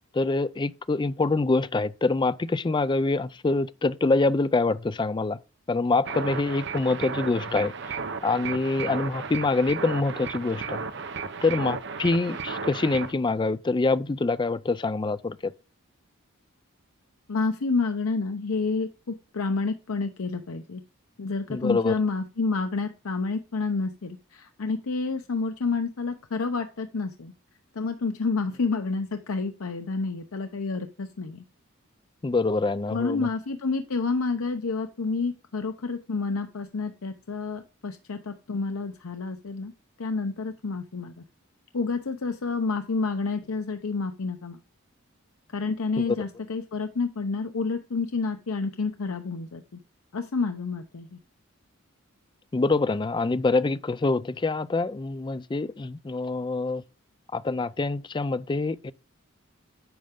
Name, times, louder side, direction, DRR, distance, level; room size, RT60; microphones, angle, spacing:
voice 1, 0.1-5.4 5.7-7.7 8.2-10.8 11.4-15.5 21.5-22.0 32.2-33.3 46.0-46.2 52.5-56.8 57.3-58.9, left 3 dB, 20° left, 0.4 m, -25 dB
sound 1, 6.0-13.1, right 5 dB, 55° right, 0.8 m, -34 dB
voice 2, 17.3-20.8 21.2-27.3 27.8-31.4 32.9-39.7 40.0-41.1 41.7-44.6 45.5-49.8 50.1-51.2, left 4 dB, 85° left, 0.7 m, -29 dB
10.0 x 6.6 x 3.7 m
head